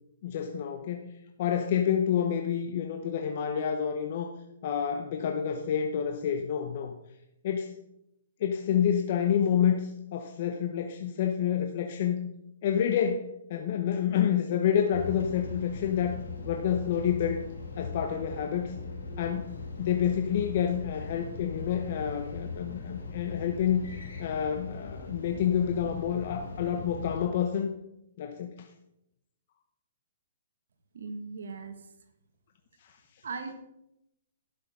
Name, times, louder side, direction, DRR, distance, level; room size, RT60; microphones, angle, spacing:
voice 1, 0.2-1.1 1.4-4.3 4.6-6.9 7.4-7.7 8.4-12.3 12.6-16.2 16.4-17.4 17.8-18.8 19.2-23.8 24.2-27.7 28.2-28.7, left 8 dB, 50° left, 5 dB, 0.9 m, -28 dB
sound 1, 14.9-27.2, left 3 dB, 90° left, 4.0 m, -40 dB
voice 2, 30.9-31.7 33.2-33.5, right 4 dB, 80° right, 7 dB, 1.5 m, -38 dB
11.5 x 6.8 x 5.4 m, 0.83 s
hypercardioid pair, 155°, 0 cm